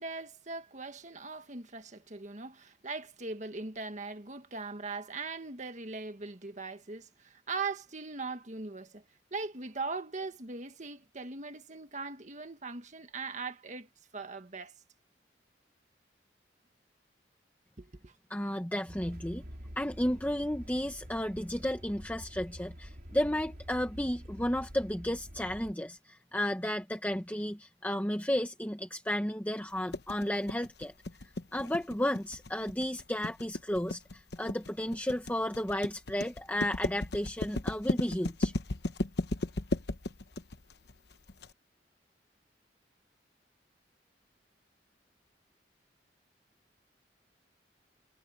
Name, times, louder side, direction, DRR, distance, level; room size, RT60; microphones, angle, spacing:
voice 1, 0.0-9.0 9.3-14.7 17.8-18.1, right 4 dB, 45° right, 1.7 m, -40 dB
voice 2, 18.3-19.4 19.8-30.9 31.5-38.5, left 1 dB, 10° left, 1.3 m, -33 dB
sound 1, 18.9-25.7, equal, 60° right, 5.4 m, -47 dB
sound 2, 29.9-41.5, left 2 dB, 65° left, 1.0 m, -35 dB
head